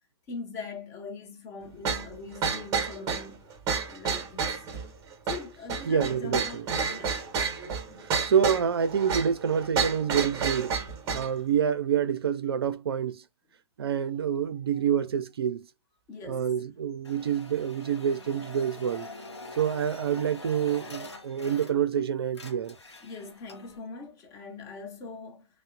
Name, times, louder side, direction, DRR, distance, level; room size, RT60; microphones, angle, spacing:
voice 1, 0.3-3.5 3.8-4.7 5.3-7.4 14.7-14.8 16.1-16.5 21.3-21.4 23.0-25.5, left 4 dB, 20° left, 0.6 m, -42 dB
sound 1, 1.8-11.3, right 5 dB, 25° right, 0.7 m, -30 dB
voice 2, 5.8-6.7 8.0-10.8 11.1-13.2 13.8-15.6 16.2-19.1 19.5-22.8, right 8 dB, 65° right, 0.4 m, -27 dB
sound 2, 17.0-22.0 22.3-23.8, left 2 dB, 85° left, 0.8 m, -45 dB
2.8 x 2.0 x 2.3 m
figure-of-eight pair, 120°, 14 cm